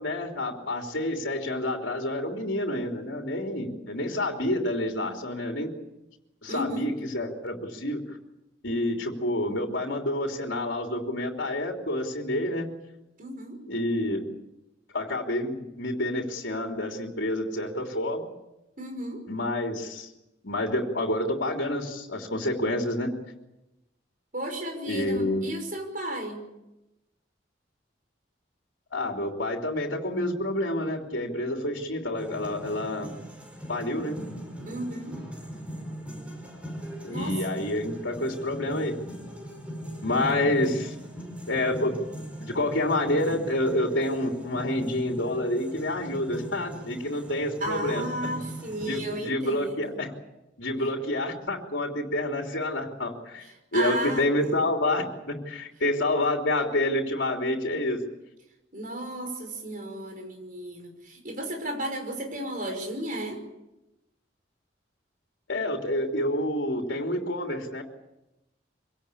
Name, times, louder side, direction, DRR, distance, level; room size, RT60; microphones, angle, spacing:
voice 1, 0.0-5.7 6.4-8.2 8.6-12.7 13.7-14.3 14.9-18.3 19.3-20.1 20.4-23.2 24.9-25.4 28.9-33.1 33.7-34.2 37.0-39.0 40.0-40.9 41.5-42.0 42.4-48.0 48.8-50.1 50.6-53.5 53.7-58.0 65.5-67.8, left 1 dB, 80° left, 2 dB, 3.2 m, -28 dB
voice 2, 6.5-6.9 13.2-13.6 18.8-19.2 24.3-26.4 34.7-35.2 37.1-37.6 47.6-49.9 53.7-54.5 58.7-63.4, right 1 dB, 45° right, 4 dB, 5.6 m, -34 dB
sound 1, 32.1-49.0, equal, 5° right, 5.0 m, -39 dB
25.0 x 17.5 x 8.5 m, 0.95 s
head